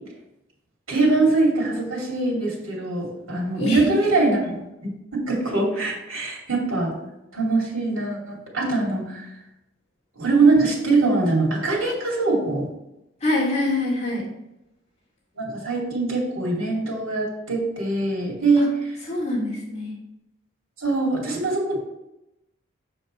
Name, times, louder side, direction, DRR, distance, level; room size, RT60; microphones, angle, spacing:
voice 1, 0.9-7.0 7.3-9.3 10.2-12.7 15.4-18.7 20.8-21.8, right 3 dB, 85° right, -2 dB, 2.7 m, -22 dB
voice 2, 13.2-14.2 18.6-18.7 19.0-19.9, left 2 dB, 30° left, -5 dB, 2.5 m, -25 dB
7.3 x 5.4 x 4.4 m, 0.87 s
head